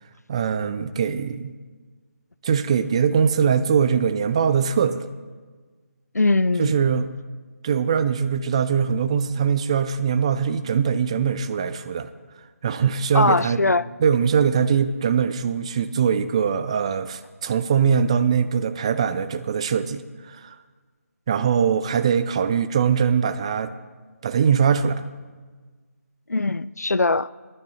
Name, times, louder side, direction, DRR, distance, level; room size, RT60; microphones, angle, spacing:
voice 1, 0.3-1.5 2.4-5.0 6.6-7.1 7.6-12.1 12.6-13.6 14.0-20.0 20.3-20.6 21.3-23.7 24.2-25.0, right 7 dB, 20° right, 11 dB, 0.4 m, -22 dB
voice 2, 6.1-6.9 13.1-13.8 26.3-27.3, left 3 dB, 80° left, 18 dB, 0.4 m, -21 dB
17.5 x 11.0 x 4.2 m, 1.4 s
figure-of-eight pair, 150°, 9 cm